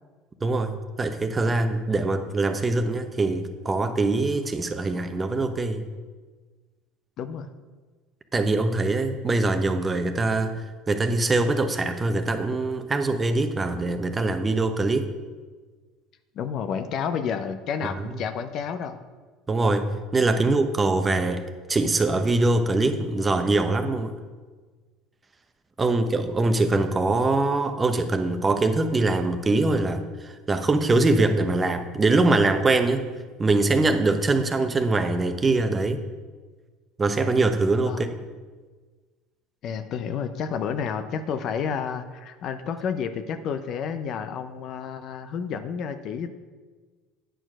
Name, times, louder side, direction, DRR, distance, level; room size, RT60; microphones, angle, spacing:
voice 1, 0.4-5.8 8.3-10.6 10.9-15.1 18.0-18.1 19.5-24.1 25.8-33.1 33.4-36.0 37.0-38.1, right 2 dB, 25° right, 8 dB, 0.8 m, -23 dB
voice 2, 7.2-7.5 16.3-19.0 20.4-20.5 37.8-38.1 39.6-46.3, left 7 dB, 55° left, 9 dB, 0.6 m, -30 dB
9.1 x 4.5 x 6.0 m, 1.4 s
supercardioid pair, 85°, 0 cm